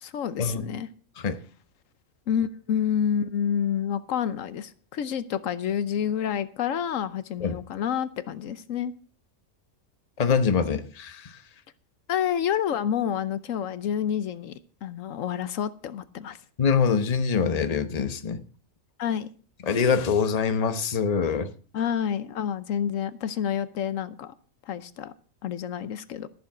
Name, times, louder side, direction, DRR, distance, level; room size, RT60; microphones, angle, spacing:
voice 1, 0.0-0.9 2.3-8.9 12.1-14.5 14.8-16.4 19.0-19.3 21.7-24.3 24.7-25.1 25.4-26.3, left 8 dB, 85° left, 1.1 m, -28 dB
voice 2, 10.2-11.4 16.6-18.4 19.6-21.5, left 6 dB, 35° left, 0.9 m, -24 dB
14.0 x 7.2 x 6.0 m
omnidirectional pair, 1.3 m